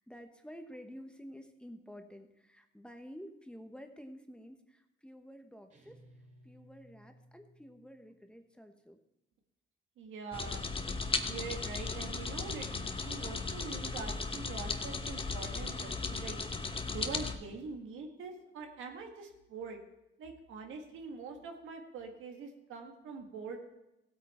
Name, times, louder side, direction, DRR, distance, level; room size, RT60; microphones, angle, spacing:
voice 1, 0.0-6.0 6.4-9.0, equal, 5° left, 6 dB, 1.1 m, -50 dB
sound 1, 5.7-8.3, equal, 40° right, 2.6 m, -60 dB
voice 2, 10.0-10.6 11.3-16.4 16.9-19.8 20.2-23.6, right 4 dB, 85° right, 3 dB, 1.8 m, -44 dB
sound 2, 10.3-17.4, left 4 dB, 25° left, 1.0 m, -36 dB
15.5 x 8.6 x 4.4 m, 0.90 s
cardioid pair, 90°, 20 cm